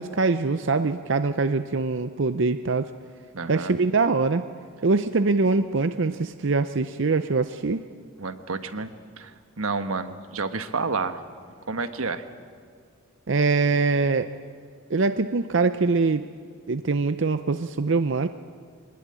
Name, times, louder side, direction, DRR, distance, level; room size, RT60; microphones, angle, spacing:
voice 1, 0.0-2.9 3.5-4.4 4.8-7.9 13.3-14.3 14.9-16.2 16.7-18.3, right 3 dB, 60° right, 10 dB, 0.6 m, -23 dB
voice 2, 3.3-3.7 8.2-8.9 9.2-11.2 11.7-12.2, right 4 dB, 90° right, 9 dB, 1.4 m, -30 dB
24.5 x 19.5 x 8.9 m, 2.2 s
head